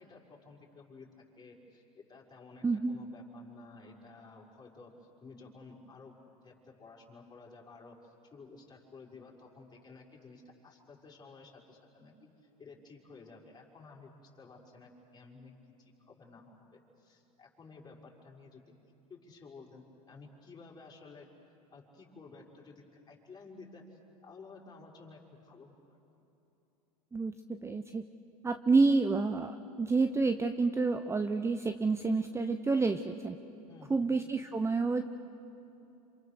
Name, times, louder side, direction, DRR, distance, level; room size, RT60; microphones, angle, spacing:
voice 1, 0.0-4.9 5.2-6.2 6.4-12.2 12.6-15.5 15.8-18.6 19.1-21.3 21.7-22.7 23.1-26.0 33.7-34.1, left 4 dB, 20° left, -2 dB, 5.8 m, -53 dB
voice 2, 2.6-3.0 27.1-28.0 28.4-33.4 33.9-35.0, right 3 dB, 15° right, 8 dB, 0.9 m, -29 dB
28.0 x 27.0 x 6.7 m, 2.9 s
hypercardioid pair, 100°, 19 cm